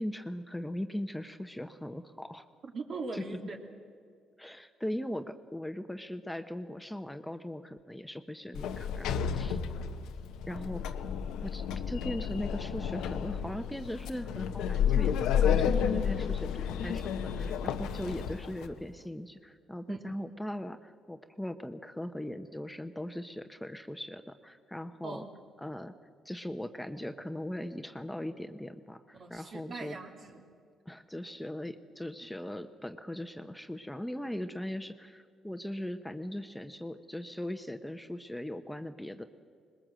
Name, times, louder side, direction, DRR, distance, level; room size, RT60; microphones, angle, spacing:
voice 1, 0.0-2.4 3.1-3.2 4.4-9.6 10.5-11.0 11.4-25.2 25.6-25.9 26.2-30.0 30.8-39.2, left 1 dB, 5° left, 8 dB, 1.0 m, -39 dB
voice 2, 2.7-3.6 9.6-9.9 19.9-20.0 25.0-25.3 29.1-30.4, right 4 dB, 60° right, 3 dB, 2.7 m, -41 dB
Sliding door, 8.5-18.7, left 8 dB, 85° left, 0.9 m, -31 dB
20.5 x 20.5 x 7.7 m, 2.2 s
supercardioid pair, 70°, 0 cm